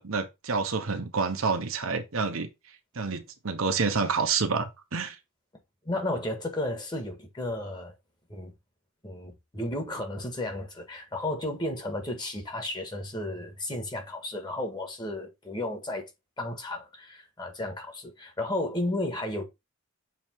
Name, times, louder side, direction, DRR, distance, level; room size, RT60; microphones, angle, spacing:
voice 1, 0.0-2.5 2.9-5.2, right 4 dB, 70° right, 1.1 m, -28 dB
voice 2, 5.8-7.9 8.3-8.5 9.0-16.1 16.4-19.4, left 1 dB, 20° left, 1.6 m, -33 dB
7.0 x 3.2 x 4.5 m
head